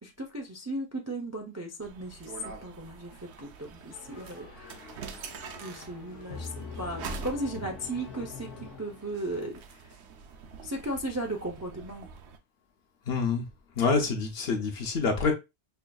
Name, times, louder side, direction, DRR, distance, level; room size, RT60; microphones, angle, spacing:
voice 1, 0.0-2.3 2.6-4.9 5.6-9.8 10.6-12.1, right 1 dB, 25° right, 0.4 m, -36 dB
sound 1, 1.8-12.4, right 5 dB, 70° right, 0.8 m, -45 dB
sound 2, 3.9-9.5, left 4 dB, 85° left, 1.0 m, -44 dB
voice 2, 13.1-13.5 13.8-15.3, left 4 dB, 60° left, 0.9 m, -27 dB
5.5 x 2.5 x 2.3 m
omnidirectional pair, 1.2 m